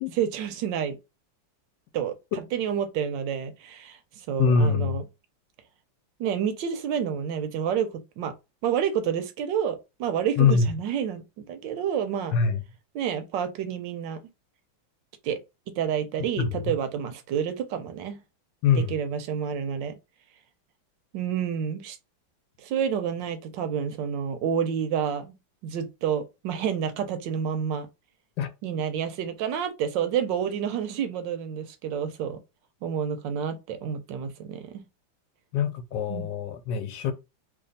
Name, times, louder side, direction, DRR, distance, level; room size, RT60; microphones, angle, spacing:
voice 1, 0.1-1.0 1.9-2.1 2.5-5.0 6.2-8.3 8.6-12.3 12.9-14.2 15.2-15.4 15.8-18.2 18.9-20.0 21.1-22.0 22.6-25.3 25.6-27.9 28.6-32.4 32.8-34.8 36.1-36.3, right 8 dB, 75° right, 1.2 m, -29 dB
voice 2, 4.4-5.0 10.4-10.7 12.3-12.6 16.4-16.7 18.6-18.9 28.4-28.5 35.5-37.1, left 5 dB, 75° left, 1.2 m, -23 dB
3.3 x 2.3 x 3.9 m
omnidirectional pair, 2.1 m